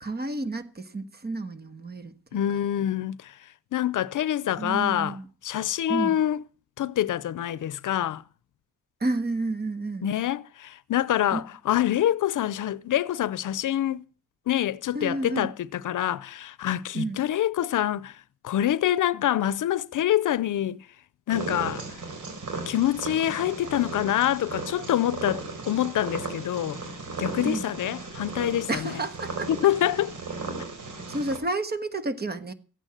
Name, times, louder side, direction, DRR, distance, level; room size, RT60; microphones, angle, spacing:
voice 1, 0.0-2.4 4.6-5.2 5.9-6.2 9.0-10.1 11.3-11.4 14.9-15.5 16.9-17.2 27.4-27.7 28.7-29.5 31.1-32.5, right 2 dB, 30° right, 1.5 m, -30 dB
voice 2, 2.3-3.3 3.7-5.2 5.4-6.4 6.8-8.2 10.0-14.0 14.5-18.2 18.4-20.8 21.3-21.8 22.7-26.8 27.2-29.0 29.5-30.1, left 12 dB, 75° left, 0.7 m, -26 dB
Purr, 21.3-31.4, right 4 dB, 70° right, 4.3 m, -36 dB
15.0 x 9.1 x 7.6 m
cardioid pair, 100°, 31 cm